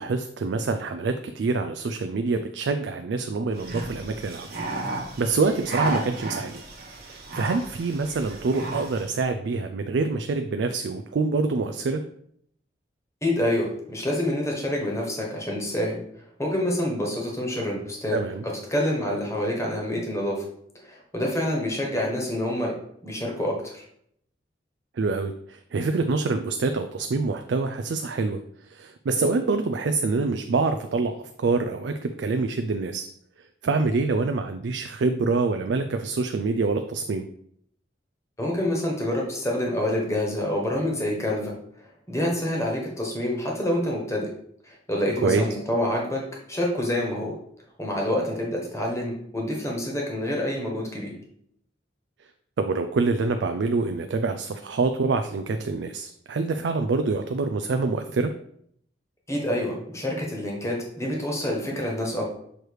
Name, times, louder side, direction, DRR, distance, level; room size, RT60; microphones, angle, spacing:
voice 1, 0.0-4.5 5.2-6.6 7.1-12.0 18.1-18.4 25.0-33.1 33.6-37.3 45.2-45.4 52.6-58.3, right 3 dB, 70° right, 7 dB, 0.4 m, -26 dB
sound 1, 3.6-9.1, right 2 dB, 55° right, 1.2 m, -33 dB
voice 2, 13.2-16.0 16.4-18.2 18.4-20.5 20.8-22.7 23.0-23.8 38.4-41.5 42.1-44.3 44.7-46.2 46.5-47.4 47.8-51.1 59.3-62.3, left 1 dB, 15° left, -1 dB, 1.3 m, -27 dB
6.5 x 3.1 x 4.7 m, 0.69 s
head